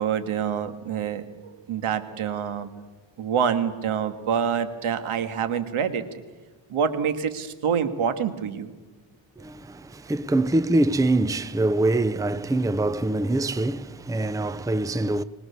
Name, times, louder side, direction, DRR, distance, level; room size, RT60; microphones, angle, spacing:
voice 1, 0.0-2.7 3.2-6.1 6.7-8.7, right 7 dB, 85° right, 1.9 m, -26 dB
voice 2, 9.4-15.2, right 2 dB, 5° right, 0.6 m, -24 dB
24.5 x 20.0 x 7.0 m
cardioid pair, 115°, 48 cm